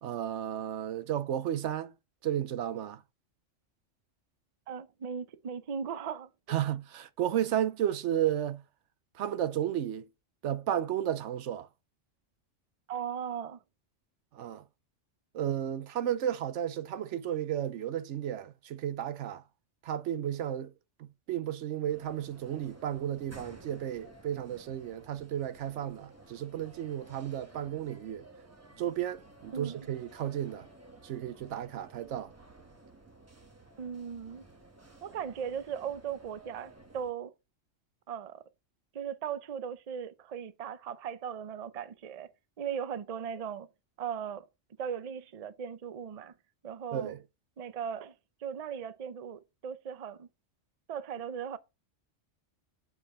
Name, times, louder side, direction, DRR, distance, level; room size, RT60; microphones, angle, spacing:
voice 1, 0.0-1.9 2.2-3.0 6.5-8.6 9.2-10.1 10.4-11.7 14.3-14.6 15.3-19.4 19.8-20.7 21.0-28.2 28.8-30.7 31.0-32.3 46.9-47.2, right 10 dB, 75° right, 0.9 m, -33 dB
voice 2, 4.7-6.6 12.9-13.6 29.5-29.8 33.8-34.5 35.0-37.3 38.1-38.4 38.9-42.3 42.6-43.7 44.0-44.5 44.8-46.3 46.6-47.1 47.6-48.1 48.4-50.3 50.9-51.6, right 8 dB, 45° right, 0.5 m, -38 dB
sound 1, 21.9-37.1, right 2 dB, 15° right, 0.9 m, -54 dB
7.3 x 4.8 x 4.6 m
omnidirectional pair, 1.3 m